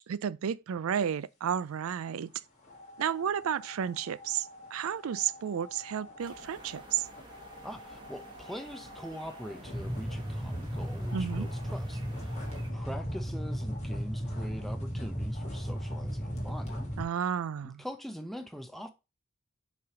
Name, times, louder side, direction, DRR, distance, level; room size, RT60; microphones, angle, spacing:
voice 1, 0.1-2.3 3.0-7.1 11.1-11.5 17.0-17.8, right 8 dB, 80° right, 0.4 m, -32 dB
sound 1, 2.6-17.0, equal, 30° left, 1.8 m, -38 dB
sound 2, 6.2-12.7, right 2 dB, 20° right, 1.3 m, -52 dB
voice 2, 7.6-16.9 17.6-18.9, equal, ahead, 0.6 m, -43 dB
6.9 x 3.4 x 4.9 m
head